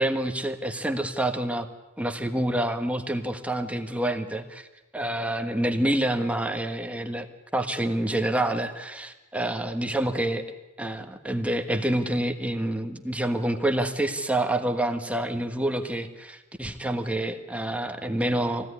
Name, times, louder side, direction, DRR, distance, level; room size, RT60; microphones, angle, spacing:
voice 1, 0.0-1.7 2.0-4.7 4.9-7.3 7.5-10.4 10.8-18.7, right 1 dB, 5° right, 5 dB, 1.4 m, -27 dB
22.5 x 16.5 x 9.8 m, 1.1 s
head